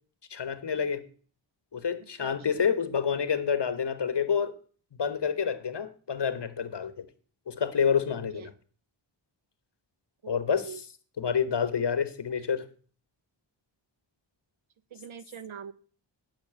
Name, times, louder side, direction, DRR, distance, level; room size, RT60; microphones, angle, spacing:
voice 1, 0.3-1.0 1.7-4.5 5.0-7.1 7.5-8.5 10.3-10.7 11.2-12.7, left 7 dB, 55° left, 1.2 m, -28 dB
voice 2, 2.2-2.6 8.3-8.5 10.2-10.8 14.9-15.7, right 7 dB, 75° right, 0.9 m, -43 dB
11.0 x 6.0 x 6.9 m
cardioid pair, 50°, 48 cm